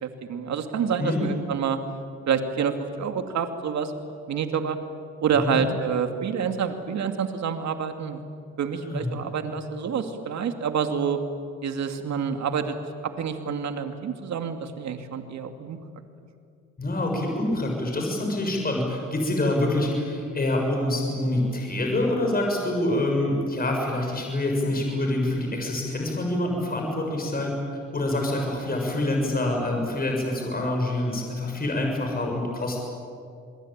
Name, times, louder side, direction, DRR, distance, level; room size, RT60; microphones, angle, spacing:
voice 1, 0.0-1.8 2.3-3.9 4.3-4.8 5.2-8.2 8.6-11.2 11.6-12.8 13.2-15.8, right 6 dB, 65° right, 6 dB, 2.5 m, -27 dB
voice 2, 8.7-9.1 16.8-27.5 27.9-32.8, left 1 dB, 30° left, 1 dB, 7.1 m, -26 dB
27.0 x 21.5 x 8.9 m, 2.3 s
cardioid pair, 90°, 30 cm